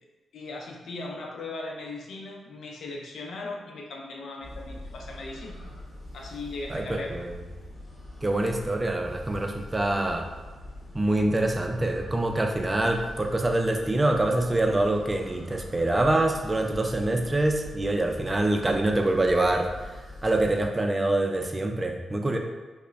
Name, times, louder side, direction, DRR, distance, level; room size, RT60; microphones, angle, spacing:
voice 1, 0.3-5.6 6.1-7.1, left 2 dB, 75° left, 0 dB, 0.6 m, -38 dB
sound 1, 4.4-20.7, left 1 dB, 15° left, 1.2 m, -43 dB
voice 2, 6.7-7.3 8.2-10.3 10.9-19.7 20.2-22.4, right 2 dB, 20° right, 3 dB, 0.4 m, -25 dB
5.2 x 2.1 x 2.5 m, 1.3 s
cardioid pair, 105°, 0 cm